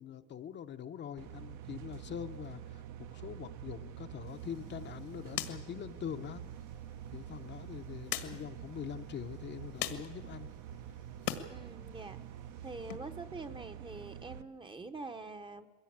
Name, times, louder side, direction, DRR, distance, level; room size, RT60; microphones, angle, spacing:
voice 1, 0.0-2.8 3.1-6.4 7.1-10.5, left 9 dB, 35° left, 7 dB, 0.7 m, -43 dB
sound 1, 1.2-14.4, right 10 dB, 60° right, 0.9 m, -47 dB
sound 2, 4.3-11.5 11.8-13.0, left 13 dB, 85° left, 1.8 m, -44 dB
voice 2, 11.5-12.2 12.6-15.7, right 3 dB, 15° right, 8 dB, 0.8 m, -45 dB
22.0 x 16.5 x 8.7 m, 1.4 s
cardioid pair, 150°, 33 cm